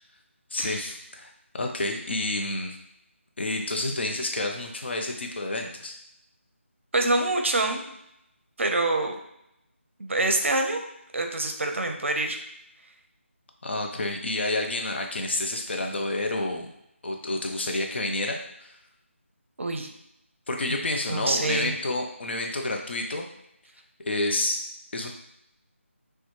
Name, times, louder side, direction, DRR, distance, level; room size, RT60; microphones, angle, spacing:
voice 1, 0.5-1.3 1.5-2.8 3.4-5.9 13.6-16.7 17.0-18.7 20.5-23.2 24.1-24.6 24.9-25.1, left 2 dB, 55° left, 2 dB, 0.8 m, -29 dB
voice 2, 6.9-7.8 8.6-9.2 10.0-10.8 11.1-12.4 19.6-19.9 21.1-21.7, right 2 dB, 65° right, 4 dB, 0.8 m, -25 dB
6.4 x 2.4 x 3.1 m, 0.80 s
figure-of-eight pair, 165°, 7 cm